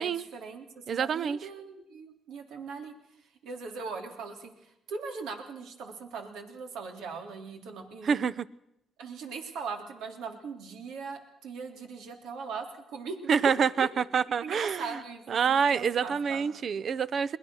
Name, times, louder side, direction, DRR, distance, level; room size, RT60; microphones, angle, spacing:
voice 1, 0.0-2.9 3.4-4.5 4.9-8.1 9.0-13.2 13.4-13.5 13.8-13.9 14.4-16.5, right 4 dB, 85° right, 5 dB, 3.3 m, -40 dB
voice 2, 0.9-1.4 8.0-8.5 13.3-15.0 15.3-17.4, right 6 dB, 55° right, 18 dB, 0.8 m, -27 dB
22.0 x 19.5 x 6.4 m, 0.81 s
cardioid pair, 90°, 0 cm